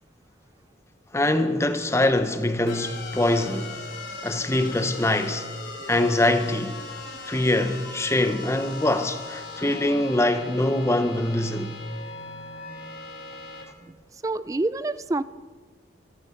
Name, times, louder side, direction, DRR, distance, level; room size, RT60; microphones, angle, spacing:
voice 1, 1.1-3.7 4.2-5.5 5.9-6.8 7.3-11.7, left 1 dB, 15° left, 0.8 m, -23 dB
sound 1, 2.7-13.6, left 3 dB, 75° left, 3.1 m, -39 dB
voice 2, 14.2-15.2, right 2 dB, 20° right, 0.3 m, -26 dB
14.5 x 14.5 x 5.8 m
head